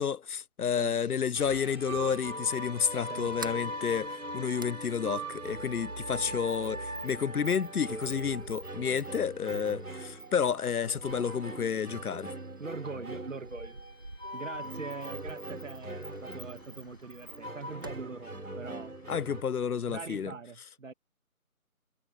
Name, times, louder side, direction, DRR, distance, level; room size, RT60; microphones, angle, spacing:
voice 1, 0.0-12.3 19.1-20.3, left 7 dB, 85° left, 0.6 m, -30 dB
voice 2, 0.7-1.1 3.0-3.4 12.6-13.8 14.3-18.9 19.9-20.9, right 4 dB, 60° right, 2.1 m, -42 dB
sound 1, 1.3-19.4, right 1 dB, 80° right, 5.4 m, -40 dB
Sliding door, 3.2-19.4, right 2 dB, 15° right, 0.9 m, -50 dB
sound 2, 14.6-20.2, left 18 dB, 15° left, 7.7 m, -64 dB
figure-of-eight pair, 155°, 44 cm